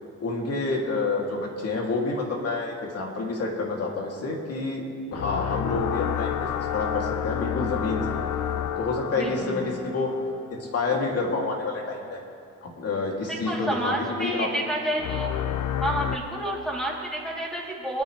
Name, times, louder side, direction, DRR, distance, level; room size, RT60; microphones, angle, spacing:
voice 1, 0.2-8.2 8.8-10.1 10.5-12.2 12.6-14.5, left 3 dB, 55° left, -1 dB, 2.8 m, -28 dB
sound 1, 5.1-10.9 15.0-16.2, left 10 dB, 70° left, 0.7 m, -30 dB
voice 2, 9.2-9.7 13.4-15.4 15.8-18.0, right 1 dB, ahead, -3 dB, 3.2 m, -29 dB
24.0 x 10.5 x 3.3 m, 2.4 s
cardioid pair, 90°, 30 cm